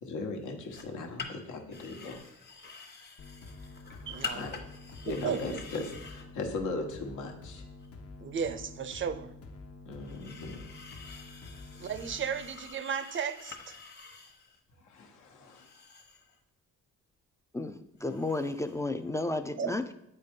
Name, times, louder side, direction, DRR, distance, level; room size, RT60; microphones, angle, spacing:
voice 1, 0.0-2.2 4.3-4.6 5.0-7.6 9.9-10.6 14.8-15.2, left 3 dB, 80° left, 3 dB, 1.2 m, -38 dB
sound 1, 0.7-1.3 1.7-6.2 7.8-7.9 10.0-14.6 15.4-16.4 18.0-18.8 19.1-19.2, left 5 dB, 35° left, 1.1 m, -46 dB
sound 2, 3.2-12.4, left 3 dB, 50° left, 0.8 m, -48 dB
voice 2, 4.1-4.5 5.1-5.6 8.2-9.3 11.8-13.7 19.6-19.7, right 7 dB, 40° right, 12 dB, 0.5 m, -34 dB
voice 3, 17.5-19.9, left 2 dB, 10° left, 9 dB, 0.3 m, -33 dB
8.5 x 4.0 x 3.7 m, 0.81 s
cardioid pair, 90°, 30 cm